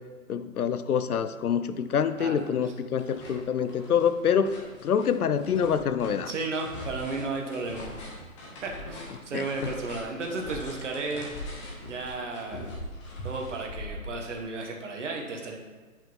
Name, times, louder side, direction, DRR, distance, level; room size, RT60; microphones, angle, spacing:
voice 1, 0.3-4.6 4.8-6.3 9.3-9.7, left 7 dB, 75° left, 12 dB, 0.6 m, -26 dB
sound 1, 1.3-1.4 1.8-2.5 2.8-14.4, left 1 dB, 20° left, 1.0 m, -42 dB
voice 2, 6.3-7.9 8.6-11.5 11.8-12.7 13.2-15.6, right 3 dB, 55° right, 1 dB, 1.3 m, -34 dB
9.2 x 5.6 x 3.1 m, 1.3 s
hypercardioid pair, 150°, 44 cm